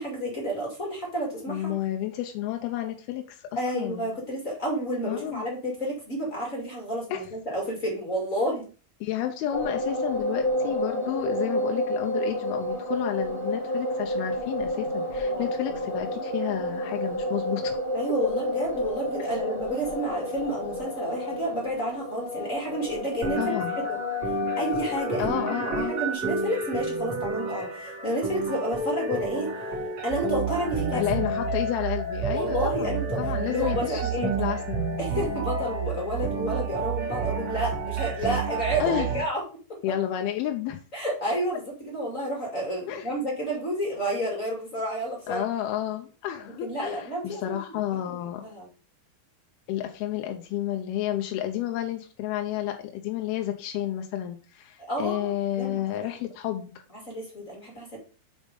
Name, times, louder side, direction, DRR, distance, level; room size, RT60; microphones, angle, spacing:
voice 1, 0.0-1.7 3.6-8.7 15.2-15.5 17.9-23.6 23.8-24.0 24.6-29.5 30.0-31.0 32.3-34.3 35.0-39.4 39.7-39.8 40.9-45.4 46.6-47.6 48.1-48.2 48.4-48.7 54.9-55.8 57.1-58.0, right 1 dB, 25° left, -1 dB, 2.1 m, -30 dB
voice 2, 1.5-3.5 3.7-4.1 5.0-5.5 7.1-7.2 9.0-17.8 19.2-19.3 23.4-23.8 25.2-25.9 30.9-34.8 38.8-39.1 39.8-40.8 42.9-43.2 45.3-48.4 49.7-56.7, left 12 dB, 90° left, 4 dB, 2.6 m, -31 dB
sound 1, 9.5-26.1, left 1 dB, 45° left, 0.6 m, -30 dB
sound 2, 23.2-39.2, right 2 dB, 40° right, 3.0 m, -31 dB
sound 3, 30.1-39.2, right 11 dB, 80° right, 2.5 m, -33 dB
6.3 x 5.3 x 5.1 m, 0.36 s
omnidirectional pair, 4.4 m